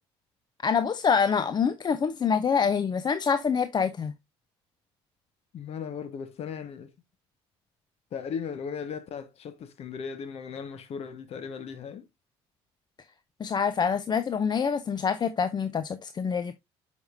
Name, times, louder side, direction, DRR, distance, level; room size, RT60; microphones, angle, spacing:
voice 1, 0.6-4.1 13.4-16.5, left 6 dB, 35° left, 0.5 m, -26 dB
voice 2, 5.5-6.9 8.1-12.1, left 6 dB, 55° left, 1.1 m, -37 dB
7.8 x 5.2 x 2.5 m
supercardioid pair, 75°, 12 cm